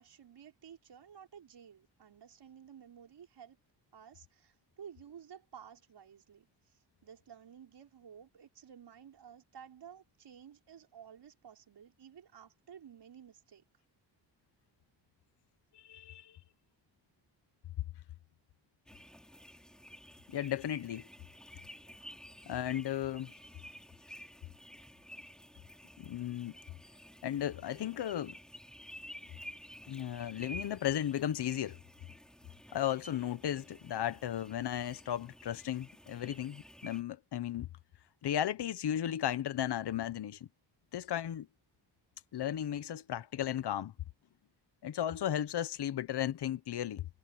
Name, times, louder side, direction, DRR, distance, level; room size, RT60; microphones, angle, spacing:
voice 1, 0.0-3.6 3.9-13.6, right 8 dB, 60° right, 6.1 m, -54 dB
voice 2, 15.7-16.4 20.3-21.1 22.5-23.3 26.0-26.5 27.2-28.4 29.9-31.8 32.7-37.7 38.2-40.5 40.9-41.5 42.3-43.9 44.8-47.1, left 11 dB, 55° left, 1.1 m, -35 dB
sound 1, 18.9-37.0, equal, ahead, 3.4 m, -52 dB
cardioid pair, 115°, 47 cm